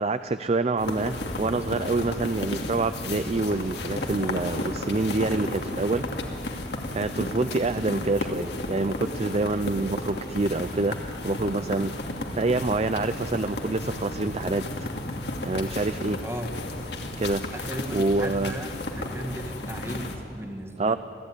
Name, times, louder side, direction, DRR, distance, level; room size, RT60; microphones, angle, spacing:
voice 1, 0.0-6.0 6.9-11.9 12.3-14.9 15.4-16.2 17.2-17.4 17.9-18.5 20.8-21.0, right 3 dB, 35° right, 11 dB, 0.5 m, -26 dB
sound 1, 0.8-20.2, left 2 dB, 70° left, 2.6 m, -33 dB
voice 2, 17.5-21.0, right 1 dB, 15° right, 3 dB, 1.8 m, -36 dB
27.5 x 16.5 x 9.7 m, 2.7 s
head